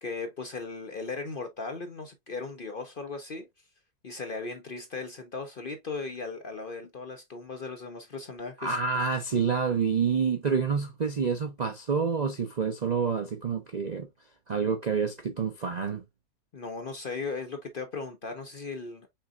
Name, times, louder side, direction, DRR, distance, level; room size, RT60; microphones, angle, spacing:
voice 1, 0.0-3.5 4.0-8.8 16.5-19.1, left 4 dB, 45° left, 0.7 m, -37 dB
voice 2, 8.6-14.1 14.5-16.0, right 6 dB, 50° right, 0.5 m, -28 dB
5.6 x 3.9 x 2.4 m
omnidirectional pair, 1.6 m